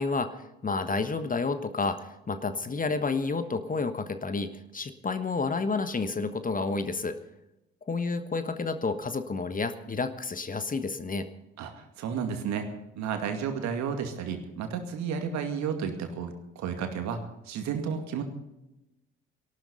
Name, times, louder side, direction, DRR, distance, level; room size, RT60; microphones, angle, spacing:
voice 1, 0.0-7.2 7.9-11.3, left 4 dB, 25° left, 10 dB, 1.3 m, -30 dB
voice 2, 11.6-12.7 13.0-17.2 17.5-18.2, right 7 dB, 55° right, 6 dB, 2.4 m, -32 dB
18.5 x 12.5 x 5.5 m, 0.93 s
figure-of-eight pair, 45°, 33 cm